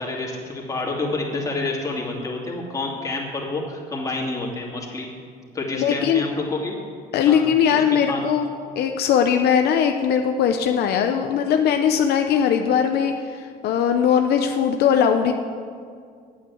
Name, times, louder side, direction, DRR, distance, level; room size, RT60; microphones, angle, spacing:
voice 1, 0.0-5.1 5.5-6.8 7.3-8.2, left 2 dB, 20° left, -2 dB, 2.6 m, -28 dB
voice 2, 5.7-6.2 7.1-8.5 8.8-15.3, left 8 dB, 70° left, 5 dB, 0.7 m, -20 dB
8.8 x 8.3 x 8.4 m, 2.1 s
cardioid pair, 110°, 17 cm